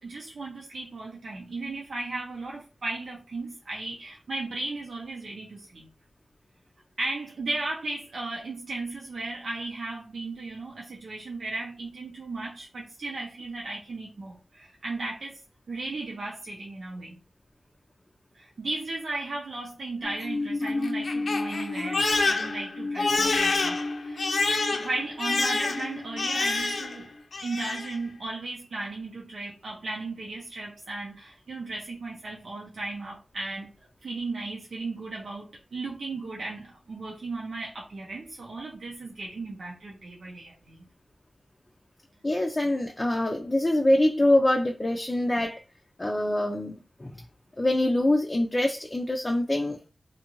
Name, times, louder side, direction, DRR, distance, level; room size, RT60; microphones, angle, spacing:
voice 1, 0.0-5.9 7.0-15.4 15.7-17.2 18.3-24.4 24.7-27.1 27.4-33.7 34.0-40.8, right 2 dB, 85° right, 0.7 m, -36 dB
Crying sobbing, 20.0-27.0 27.3-28.0, left 3 dB, 80° left, 0.5 m, -27 dB
voice 2, 42.2-45.6 46.0-46.7 47.0-47.1 47.6-49.9, left 1 dB, 25° left, 0.4 m, -24 dB
2.6 x 2.5 x 2.9 m
wide cardioid pair, 90°, 0 cm